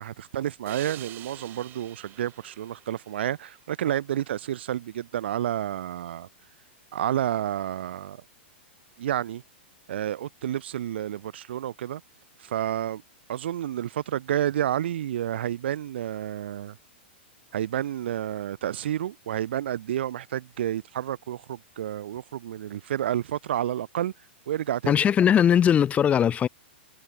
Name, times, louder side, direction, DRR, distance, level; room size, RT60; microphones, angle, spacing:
voice 1, 0.0-6.3 6.9-8.2 9.0-9.4 9.9-12.0 12.4-13.0 13.3-16.8 17.5-24.1 24.5-24.9, right 11 dB, 70° right, 1.1 m, -30 dB
sound 1, 0.7-4.0, right 14 dB, 35° right, 4.5 m, -46 dB
voice 2, 24.9-26.5, left 9 dB, 20° left, 1.5 m, -20 dB
hypercardioid pair, 120°, 6 cm